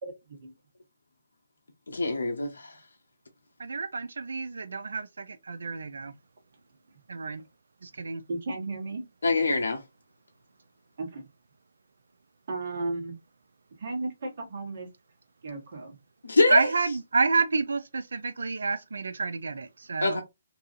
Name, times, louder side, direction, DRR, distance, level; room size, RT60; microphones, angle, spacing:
voice 1, 0.0-0.5 6.9-7.0 8.3-9.0 11.0-11.3 12.5-13.2 13.8-14.9 15.4-16.0, right 2 dB, 60° right, 1.2 m, -34 dB
voice 2, 1.9-2.8 9.2-9.8 16.2-16.7 20.0-20.2, left 3 dB, 85° left, 0.5 m, -24 dB
voice 3, 3.6-6.1 7.1-7.4 7.8-8.2 16.5-20.2, right 4 dB, 75° right, 0.3 m, -29 dB
2.6 x 2.4 x 2.5 m
hypercardioid pair, 145°, 0 cm